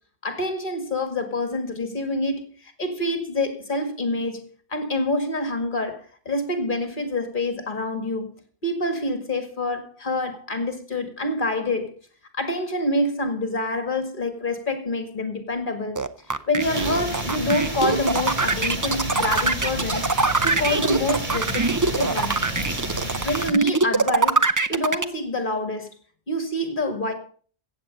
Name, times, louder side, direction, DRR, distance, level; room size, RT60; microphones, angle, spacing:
voice 1, 0.2-8.3 8.6-11.9 12.3-16.0 16.5-20.0 20.4-22.5 23.2-24.4 24.7-25.9 26.3-27.1, left 1 dB, 50° left, 2.3 m, -26 dB
sound 1, 16.0-25.0, right 3 dB, 25° right, 0.5 m, -22 dB
sound 2, 16.6-23.5, right 1 dB, 45° right, 2.8 m, -30 dB
15.0 x 8.4 x 5.3 m
omnidirectional pair, 1.1 m